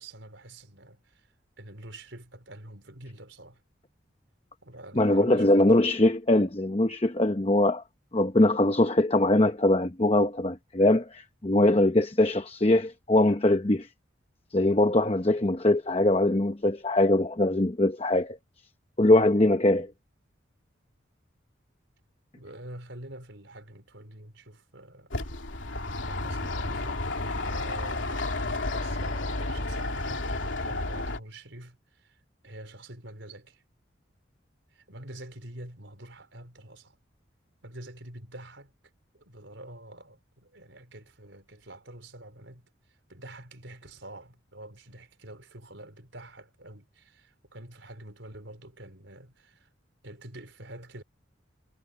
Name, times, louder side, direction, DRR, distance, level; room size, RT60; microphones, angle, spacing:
voice 1, 0.0-3.6 4.6-5.7 22.3-25.1 26.1-33.6 34.7-37.0 37.6-38.7 39.1-49.7 50.0-51.0, right 1 dB, 75° right, 4.6 m, -47 dB
voice 2, 5.0-7.8 8.1-13.9 14.5-18.4 19.0-19.9, left 1 dB, 30° left, 0.9 m, -22 dB
sound 1, 25.1-31.2, left 2 dB, 80° left, 2.9 m, -31 dB
head